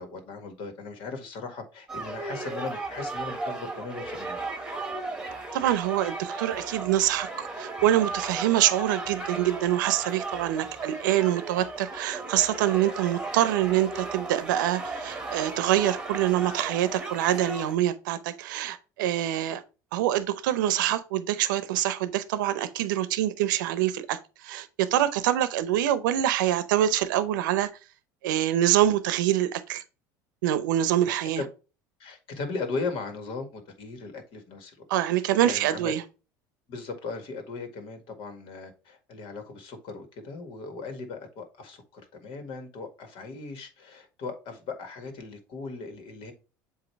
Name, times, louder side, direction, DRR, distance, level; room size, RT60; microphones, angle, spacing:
voice 1, 0.0-4.4 31.0-31.5 32.0-34.8 35.1-36.0 36.7-46.3, left 4 dB, 60° left, 1.8 m, -38 dB
sound 1, 1.9-17.7, right 3 dB, 10° right, 1.5 m, -36 dB
voice 2, 5.5-19.6 19.9-24.2 24.4-27.7 28.2-29.8 30.4-31.4 34.9-36.0, right 12 dB, 85° right, 0.7 m, -25 dB
7.8 x 2.8 x 4.4 m
supercardioid pair, 95°, 10 cm